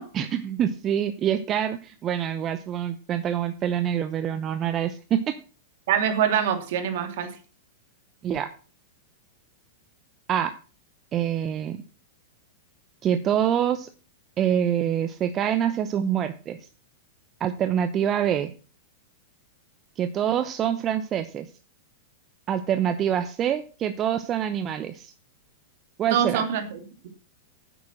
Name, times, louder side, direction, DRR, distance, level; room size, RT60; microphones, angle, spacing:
voice 1, 0.1-5.4 8.2-8.5 10.3-10.5 11.1-11.8 13.0-13.9 14.4-16.6 17.4-18.5 20.0-21.5 22.5-25.1 26.0-26.5, right 9 dB, 30° right, 10 dB, 0.8 m, -25 dB
voice 2, 5.9-7.3 26.1-26.8, right 8 dB, 60° right, 6 dB, 2.7 m, -24 dB
9.8 x 8.0 x 6.0 m, 0.36 s
hypercardioid pair, 105°, 0 cm